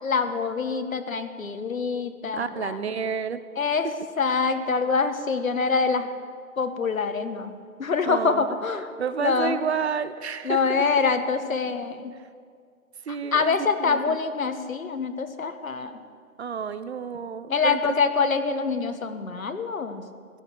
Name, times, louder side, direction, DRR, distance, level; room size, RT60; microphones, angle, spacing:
voice 1, 0.0-2.8 3.6-3.9 4.2-6.1 6.6-7.5 7.8-8.8 9.2-9.6 10.4-12.1 13.3-16.0 17.5-20.0, left 5 dB, 70° left, 8 dB, 1.5 m, -25 dB
voice 2, 2.3-3.4 3.8-3.9 8.0-8.6 9.0-10.9 13.1-14.2 16.4-18.0, right 6 dB, 50° right, 14 dB, 0.8 m, -30 dB
16.0 x 13.0 x 6.7 m, 2.1 s
figure-of-eight pair, 135°, 43 cm